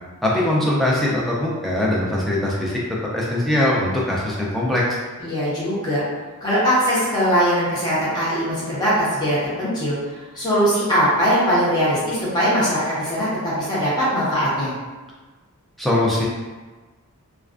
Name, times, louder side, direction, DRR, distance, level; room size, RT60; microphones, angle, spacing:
voice 1, 0.2-2.8 3.1-4.8 15.8-16.2, left 1 dB, ahead, -6 dB, 0.4 m, -21 dB
voice 2, 5.2-6.0 6.4-10.0 10.3-14.7, equal, 20° left, -10 dB, 0.8 m, -21 dB
2.3 x 2.2 x 2.4 m, 1.3 s
head